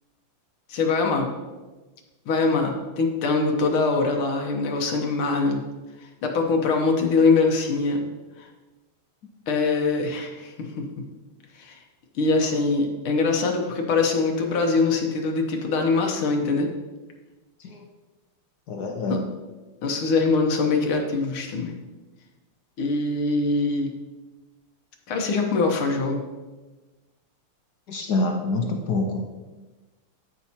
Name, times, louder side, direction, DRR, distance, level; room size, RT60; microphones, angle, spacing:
voice 1, 0.7-1.3 2.3-5.6 6.2-8.0 9.5-10.9 11.6-11.8 12.2-16.7 19.1-19.2 19.8-21.8 22.8-23.9 25.1-26.2, left 3 dB, 80° left, 2 dB, 1.9 m, -23 dB
voice 2, 18.7-19.3 27.9-29.3, left 2 dB, 60° left, 2 dB, 1.2 m, -26 dB
13.5 x 5.4 x 2.9 m, 1.2 s
omnidirectional pair, 2.3 m